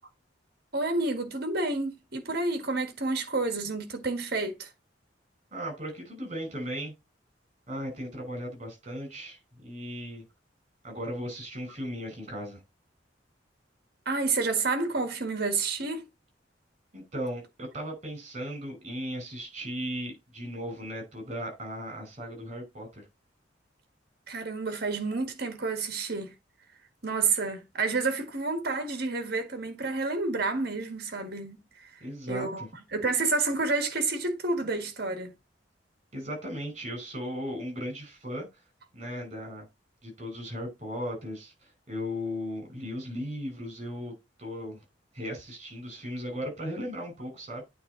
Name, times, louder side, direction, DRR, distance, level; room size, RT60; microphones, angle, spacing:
voice 1, 0.7-4.7 14.1-16.1 24.3-26.3 27.0-31.9 32.3-32.6 32.9-35.3, right 3 dB, 55° right, 1.7 m, -29 dB
voice 2, 5.5-6.9 7.7-10.2 10.8-12.6 16.9-23.0 32.0-32.7 36.1-38.5 38.9-39.7 40.0-44.1 44.4-44.8 45.1-47.6, equal, 35° right, 4.3 m, -36 dB
8.9 x 3.7 x 3.9 m
head